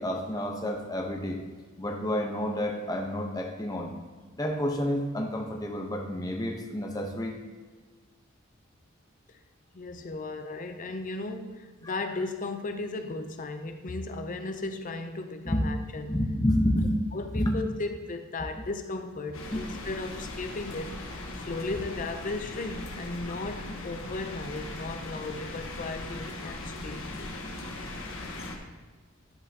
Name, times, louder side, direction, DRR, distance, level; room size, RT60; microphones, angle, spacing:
voice 1, 0.0-1.4 1.8-3.9 4.4-7.4 15.4-15.6 16.1-17.0 17.3-17.6 19.5-19.6, equal, 20° left, 1 dB, 0.9 m, -29 dB
voice 2, 9.7-16.2 17.1-20.9 21.4-27.3, left 2 dB, 40° left, 7 dB, 0.6 m, -36 dB
sound 1, 19.3-28.6, left 2 dB, 85° left, 1.2 m, -39 dB
11.0 x 5.4 x 2.8 m, 1.4 s
head